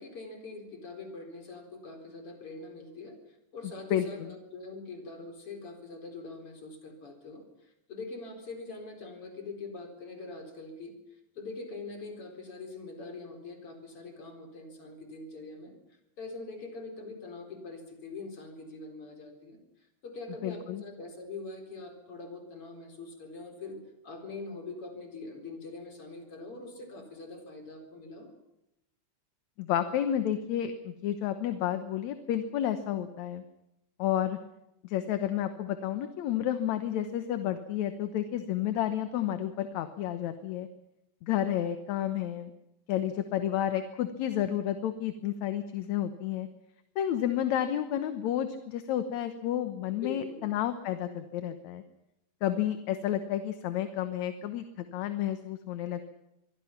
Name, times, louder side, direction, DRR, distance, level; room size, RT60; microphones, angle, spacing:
voice 1, 0.0-3.2 3.5-10.9 11.3-15.7 16.2-19.6 20.0-23.8 24.0-28.3 49.9-50.5, left 3 dB, 45° left, 3 dB, 5.0 m, -43 dB
voice 2, 3.9-4.3 20.4-20.8 29.6-33.4 34.0-34.4 34.8-40.7 41.2-42.5 42.9-46.5 47.0-51.8 52.4-56.1, left 11 dB, 70° left, 9 dB, 2.2 m, -31 dB
26.0 x 23.0 x 5.9 m, 0.88 s
omnidirectional pair, 3.6 m